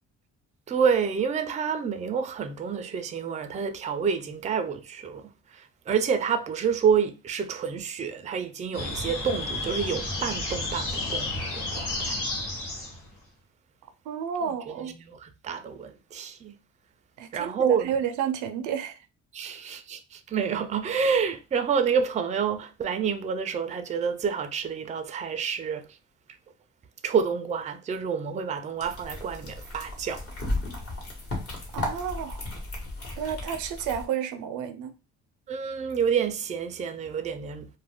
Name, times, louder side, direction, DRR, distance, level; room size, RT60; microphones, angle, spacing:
voice 1, 0.7-5.3 5.9-12.2 15.1-16.5 17.3-17.9 19.3-25.8 27.0-30.2 35.5-37.7, right 6 dB, 25° right, 0.3 m, -28 dB
sound 1, 8.7-13.1, left 2 dB, 85° left, 1.0 m, -31 dB
voice 2, 14.1-14.9 17.2-19.0 31.7-32.5 33.2-34.9, right 8 dB, 90° right, 0.5 m, -31 dB
sound 2, 28.8-34.1, left 1 dB, 50° left, 1.2 m, -35 dB
2.3 x 2.1 x 3.4 m
cardioid pair, 90°, 30 cm